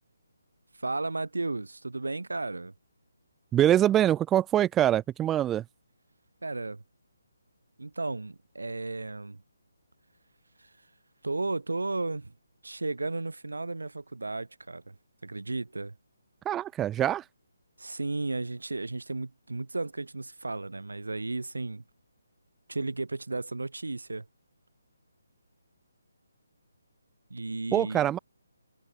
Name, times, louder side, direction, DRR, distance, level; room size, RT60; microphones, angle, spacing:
voice 1, 0.8-2.7 6.4-6.8 7.8-9.4 10.6-10.7 11.2-12.3 12.6-14.9 15.2-15.9 17.8-21.8 22.7-24.2 27.3-28.1, right 3 dB, 80° right, 1.7 m, -34 dB
voice 2, 3.5-5.6 16.5-17.2 27.7-28.2, right 11 dB, 10° right, 0.6 m, -24 dB
figure-of-eight pair, 150°, 0 cm